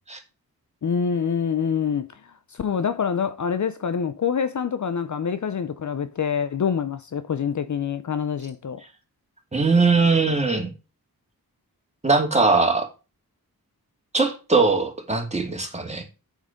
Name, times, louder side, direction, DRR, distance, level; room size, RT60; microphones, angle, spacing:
voice 1, 0.8-2.1 2.5-8.8, left 7 dB, 55° left, 0.6 m, -26 dB
voice 2, 9.5-10.7 12.0-12.9 14.1-16.0, right 3 dB, 20° right, 2.4 m, -20 dB
8.6 x 6.3 x 5.2 m
wide cardioid pair, 125°, 36 cm